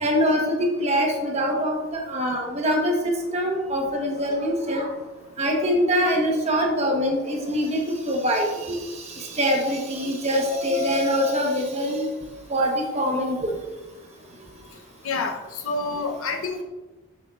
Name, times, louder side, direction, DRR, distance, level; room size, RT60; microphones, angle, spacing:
voice 1, 0.0-4.9 5.4-8.8 9.2-12.1 12.5-13.5, equal, 30° right, 1 dB, 1.2 m, -24 dB
voice 2, 15.0-16.6, left 3 dB, 65° left, 4 dB, 0.9 m, -28 dB
9.9 x 6.5 x 2.5 m, 1.2 s
head